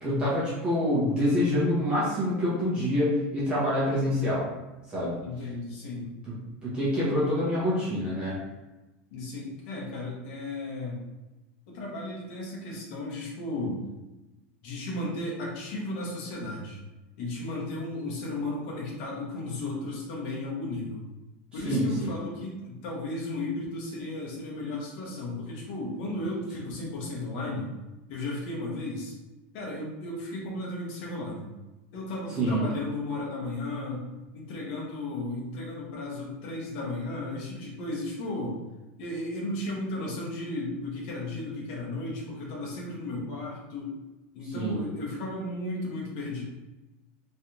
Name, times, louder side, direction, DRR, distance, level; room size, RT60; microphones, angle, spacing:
voice 1, 0.0-4.4 4.9-5.2 6.6-8.4 21.6-22.2 32.4-32.6 44.5-44.8, equal, 15° right, -9 dB, 1.1 m, -26 dB
voice 2, 5.2-6.1 9.1-11.0 11.7-13.8 14.6-16.8 17.2-21.1 21.5-27.7 28.1-29.1 29.5-31.5 31.9-34.0 34.3-38.6 39.0-43.9 44.3-46.4, left 2 dB, 55° left, -3 dB, 1.3 m, -34 dB
3.3 x 3.3 x 2.9 m, 1.1 s
supercardioid pair, 165°, 6 cm